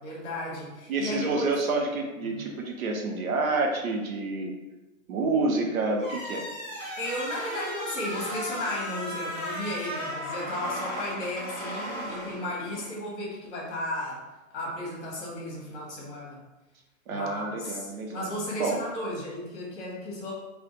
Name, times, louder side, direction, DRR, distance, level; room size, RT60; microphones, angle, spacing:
voice 1, 0.0-1.5 2.2-2.4 7.0-14.2 14.5-16.4 17.1-20.3, left 1 dB, 25° left, -4 dB, 1.3 m, -34 dB
voice 2, 0.9-4.5 5.1-6.4 17.1-18.3 18.6-18.8, right 3 dB, 85° right, 1 dB, 0.8 m, -28 dB
sound 1, 6.0-12.9, equal, ahead, 0.5 m, -36 dB
2.6 x 2.4 x 3.8 m, 1.1 s
hypercardioid pair, 150°, 41 cm